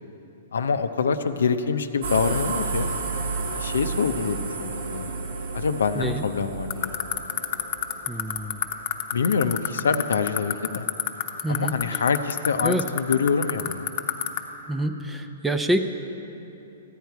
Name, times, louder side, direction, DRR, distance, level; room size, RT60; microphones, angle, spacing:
voice 1, 0.5-2.9 3.5-5.1 5.5-6.9 9.1-10.9 11.5-13.9, left 5 dB, 80° left, 9 dB, 0.6 m, -25 dB
sound 1, 2.0-8.8, right 3 dB, 70° right, 1.5 m, -32 dB
voice 2, 5.9-6.2 8.1-8.7 11.4-12.0 12.6-12.8 14.7-15.8, right 1 dB, 10° right, 8 dB, 0.6 m, -27 dB
sound 2, 6.7-14.4, left 13 dB, 50° left, 0.9 m, -23 dB
14.0 x 9.1 x 4.7 m, 3.0 s
hypercardioid pair, 130°, 0 cm